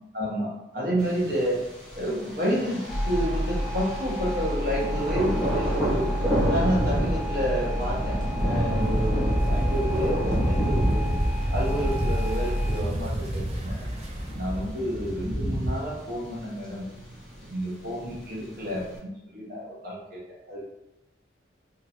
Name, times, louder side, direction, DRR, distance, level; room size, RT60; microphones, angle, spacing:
voice 1, 0.1-1.6 1.9-6.1 6.5-11.2 11.5-13.9 14.3-16.9 17.5-20.2 20.5-20.6, equal, 50° right, -5 dB, 1.0 m, -30 dB
Thunder, 1.0-19.0, equal, ahead, 0.9 m, -32 dB
sound 1, 2.9-12.8, equal, 45° left, 0.5 m, -30 dB
sound 2, 6.1-15.7, right 1 dB, 35° right, 0.5 m, -29 dB
2.8 x 2.5 x 2.8 m, 0.89 s
head